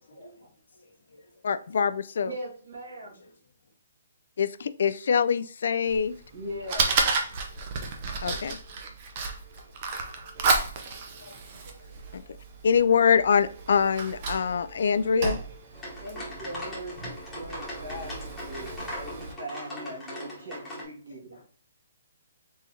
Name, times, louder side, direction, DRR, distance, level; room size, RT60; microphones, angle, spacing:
voice 1, 0.0-1.4 3.2-3.3 9.6-9.7 10.2-11.4 11.7-12.3 16.2-16.3 21.3-21.4, left 2 dB, 80° left, 1.4 m, -56 dB
voice 2, 1.4-2.3 4.4-6.1 8.2-8.6 12.1-12.2 12.6-15.4, left 6 dB, 55° left, 0.3 m, -24 dB
voice 3, 2.2-3.1 6.3-6.9 15.9-21.5, equal, 60° right, 1.8 m, -40 dB
Fire, 5.9-19.3, right 4 dB, 30° right, 0.6 m, -33 dB
sound 1, 15.7-20.8, equal, 5° left, 1.1 m, -39 dB
4.1 x 3.6 x 2.7 m
hypercardioid pair, 175°, 0 cm